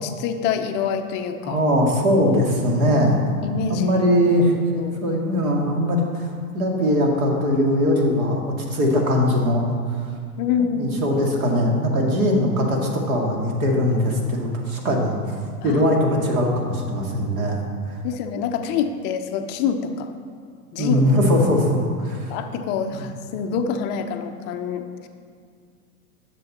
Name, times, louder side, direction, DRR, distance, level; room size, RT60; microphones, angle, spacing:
voice 1, 0.0-1.6 3.4-4.1 4.8-5.0 10.4-10.9 15.6-15.9 18.0-20.1 20.7-21.0 22.3-25.1, left 7 dB, 25° left, 6 dB, 0.5 m, -26 dB
voice 2, 1.4-3.2 3.7-4.5 5.0-6.3 6.5-9.6 10.8-15.2 15.6-17.6 20.8-22.4 22.9-23.0, equal, 65° right, 0 dB, 2.2 m, -20 dB
10.5 x 6.9 x 4.2 m, 2.2 s
hypercardioid pair, 110°, 45 cm